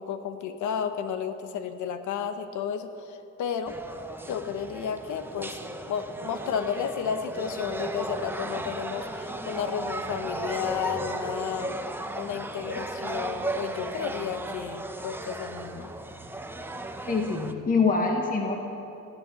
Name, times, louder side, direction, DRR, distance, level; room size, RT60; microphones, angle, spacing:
voice 1, 0.0-3.8 4.3-5.6 5.9-11.7 12.2-15.9, left 7 dB, 80° left, 9 dB, 1.0 m, -32 dB
sound 1, 3.7-17.5, right 2 dB, 5° right, 0.8 m, -35 dB
voice 2, 17.1-18.6, left 4 dB, 30° left, 2 dB, 1.4 m, -24 dB
14.5 x 10.5 x 6.9 m, 2.9 s
cardioid pair, 90°, 30 cm